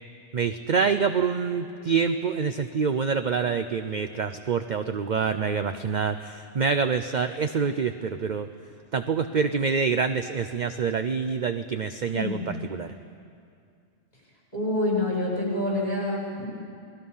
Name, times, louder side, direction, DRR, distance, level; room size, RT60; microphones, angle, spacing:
voice 1, 0.3-8.5 8.9-12.9, right 5 dB, 50° right, 9 dB, 0.6 m, -26 dB
voice 2, 12.1-12.5 14.5-16.5, left 1 dB, 30° left, -5 dB, 7.3 m, -27 dB
30.0 x 20.0 x 5.6 m, 2.4 s
omnidirectional pair, 1.4 m